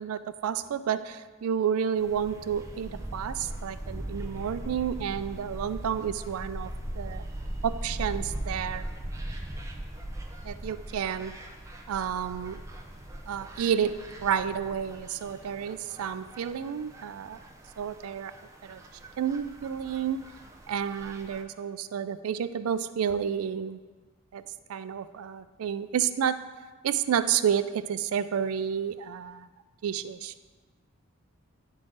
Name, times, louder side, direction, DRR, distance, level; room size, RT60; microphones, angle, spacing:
voice 1, 0.0-7.2 7.6-8.9 10.4-11.3 11.9-12.6 13.3-13.9 14.2-17.4 17.8-18.3 18.6-18.8 19.2-20.2 20.7-23.8 24.3-24.4 24.7-26.4 26.8-29.5 29.8-30.3, right 8 dB, 90° right, 13 dB, 0.3 m, -30 dB
sound 1, 2.0-21.4, right 1 dB, 15° right, 0.5 m, -40 dB
10.5 x 3.8 x 3.9 m, 1.4 s
head